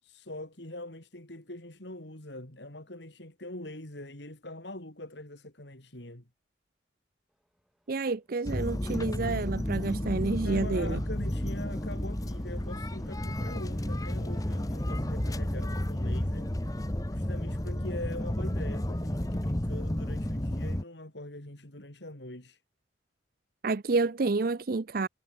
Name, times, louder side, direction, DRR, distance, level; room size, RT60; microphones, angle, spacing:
voice 1, 0.0-6.3 10.4-22.6, left 1 dB, 65° left, 3.9 m, -43 dB
Fixed-wing aircraft airplane, 7.3-17.5, equal, ahead, 3.8 m, -61 dB
voice 2, 7.9-11.0 23.6-25.1, right 3 dB, 50° right, 0.6 m, -29 dB
sound 1, 8.5-20.8, left 1 dB, 20° left, 1.1 m, -32 dB
head